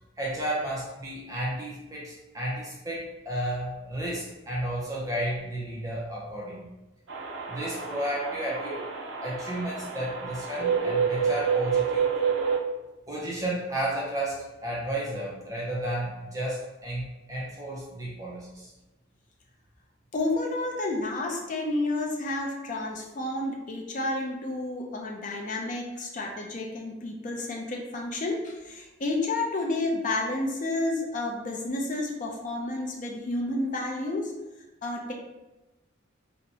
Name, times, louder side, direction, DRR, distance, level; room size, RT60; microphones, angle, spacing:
voice 1, 0.2-6.7 7.5-8.8 9.2-12.0 13.1-18.7, right 1 dB, 15° right, -5 dB, 0.5 m, -32 dB
sound 1, 7.1-12.6, right 6 dB, 70° right, 0.5 m, -28 dB
voice 2, 20.1-34.3 34.8-35.1, left 2 dB, 40° left, 1 dB, 0.5 m, -30 dB
2.7 x 2.2 x 3.9 m, 1.0 s
head